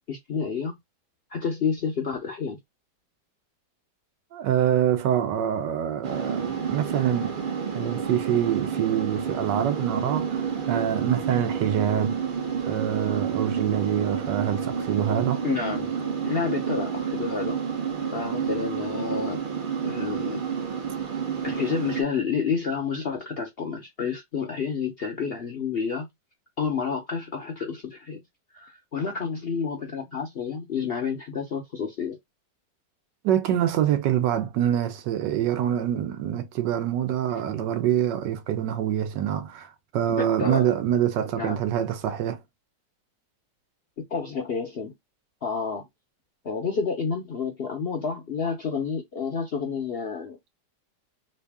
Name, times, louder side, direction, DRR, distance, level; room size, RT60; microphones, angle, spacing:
voice 1, 0.1-0.8 1.3-2.6 15.4-16.0 16.2-17.6 18.1-19.4 19.8-20.4 21.4-26.1 26.6-28.2 28.5-32.2 40.1-40.7 41.4-41.6 44.0-44.9 45.4-45.9 46.4-50.4, left 6 dB, 60° left, 0.6 m, -29 dB
voice 2, 4.3-7.4 7.7-12.1 12.6-15.4 33.2-42.4, right 10 dB, 85° right, 1.3 m, -25 dB
sound 1, 6.0-22.0, right 7 dB, 50° right, 0.6 m, -29 dB
3.2 x 2.7 x 3.3 m
omnidirectional pair, 1.8 m